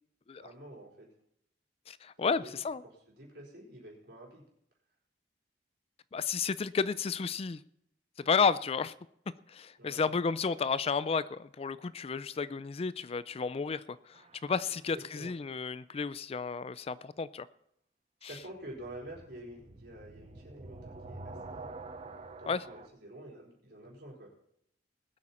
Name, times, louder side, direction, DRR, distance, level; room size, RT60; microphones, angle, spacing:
voice 1, 0.4-1.1 2.2-2.6 3.2-4.4 9.8-10.1 14.7-15.3 18.2-21.7 22.4-24.3, right 1 dB, 65° right, 4.4 m, -48 dB
voice 2, 1.9-2.8 6.1-7.6 8.3-8.9 9.5-17.5 18.2-18.3 22.5-22.6, left 5 dB, 35° left, 0.4 m, -32 dB
sound 1, 14.1-15.0 18.6-22.9, right 3 dB, 35° right, 0.7 m, -47 dB
19.5 x 8.4 x 4.3 m
head